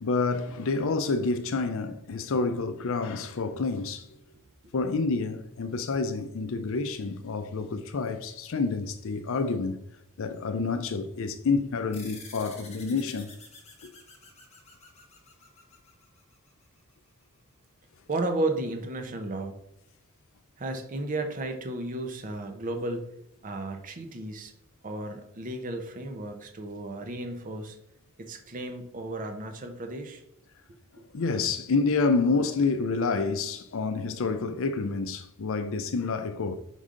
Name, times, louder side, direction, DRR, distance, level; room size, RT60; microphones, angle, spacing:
voice 1, 0.0-4.1 4.7-9.8 10.2-13.3 13.8-13.9 31.1-36.6, left 4 dB, 65° left, 0.5 m, -28 dB
sound 1, 11.9-16.8, left 4 dB, 30° left, 1.1 m, -50 dB
voice 2, 18.1-19.6 20.6-23.1 23.4-24.5 24.8-27.8 28.2-30.2, right 2 dB, 40° right, 0.7 m, -33 dB
5.4 x 4.9 x 3.7 m
head